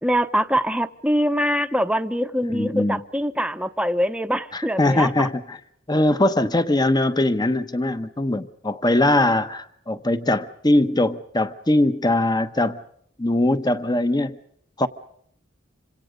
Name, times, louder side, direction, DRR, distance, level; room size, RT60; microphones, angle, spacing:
voice 1, 0.0-5.3, equal, 5° right, 10 dB, 0.8 m, -23 dB
voice 2, 2.5-3.0 4.5-5.6 5.9-12.8 13.2-14.4 14.8-14.9, left 1 dB, 20° left, 12 dB, 1.0 m, -21 dB
27.0 x 26.0 x 5.2 m, 0.68 s
head